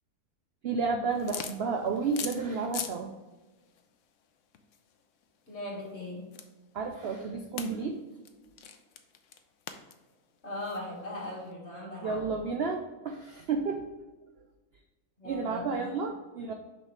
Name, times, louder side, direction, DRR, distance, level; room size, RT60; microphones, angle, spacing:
voice 1, 0.6-3.1 6.7-8.2 12.0-13.8 15.2-16.5, right 4 dB, 65° right, 4 dB, 0.6 m, -31 dB
sound 1, 1.1-3.0 3.3-11.5, left 8 dB, 65° left, 0.9 m, -43 dB
voice 2, 5.5-6.3 10.4-12.4 15.2-16.0, left 1 dB, 45° left, -4 dB, 2.2 m, -39 dB
6.3 x 5.6 x 3.3 m, 1.2 s
omnidirectional pair, 1.6 m